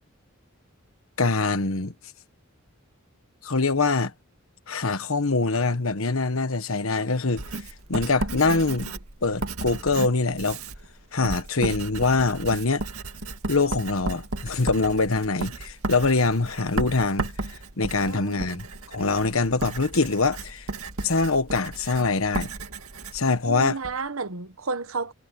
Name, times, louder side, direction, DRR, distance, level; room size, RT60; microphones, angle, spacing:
voice 1, 1.2-1.9 3.4-4.1 4.7-7.4 7.9-8.9 9.2-10.6 11.1-12.8 13.5-17.3 17.8-20.6 21.0-22.5 23.1-23.8, left 3 dB, 70° left, 1.4 m, -24 dB
Writing, 7.4-24.0, right 2 dB, 90° right, 2.1 m, -34 dB
voice 2, 18.0-18.6 23.5-25.1, right 4 dB, 70° right, 1.3 m, -32 dB
head